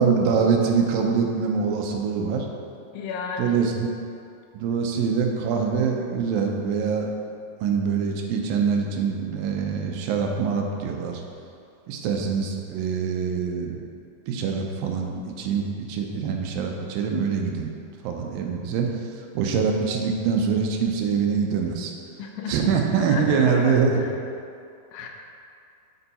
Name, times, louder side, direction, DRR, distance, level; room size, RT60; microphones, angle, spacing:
voice 1, 0.0-2.5 3.4-3.9 4.5-7.1 7.6-11.2 11.9-13.8 14.3-17.7 18.0-21.9 22.5-24.0, right 6 dB, 90° right, 2 dB, 2.4 m, -24 dB
voice 2, 2.9-3.6 22.2-22.7 23.0-24.1 24.9-25.1, left 5 dB, 85° left, 1 dB, 2.2 m, -33 dB
7.0 x 4.6 x 4.1 m, 2.4 s
omnidirectional pair, 3.9 m